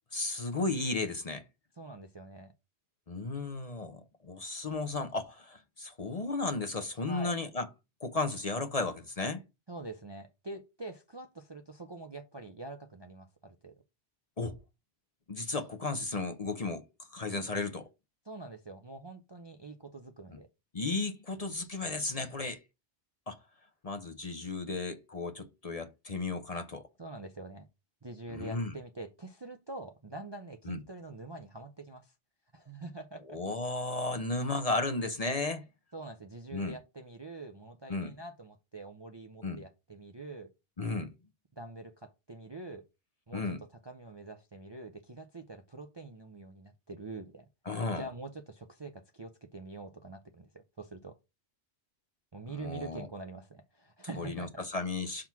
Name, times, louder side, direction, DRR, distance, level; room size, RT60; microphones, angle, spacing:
voice 1, 0.1-1.4 3.1-7.7 8.0-9.4 14.4-14.6 15.3-16.8 17.1-17.9 20.7-22.6 23.3-23.4 23.8-26.9 28.3-28.7 30.7-30.8 33.3-35.6 36.5-36.8 37.9-38.1 39.4-39.6 40.8-41.1 43.3-43.6 47.7-48.1 52.5-53.1 54.2-55.3, left 3 dB, 40° left, 0.8 m, -34 dB
voice 2, 1.8-2.5 7.1-7.4 9.7-13.7 18.3-20.5 27.0-27.7 28.0-32.1 32.5-33.4 35.9-40.5 41.6-42.8 43.3-47.5 48.0-51.2 52.3-54.6, right 2 dB, 30° right, 0.5 m, -45 dB
5.9 x 3.7 x 5.9 m
omnidirectional pair, 1.2 m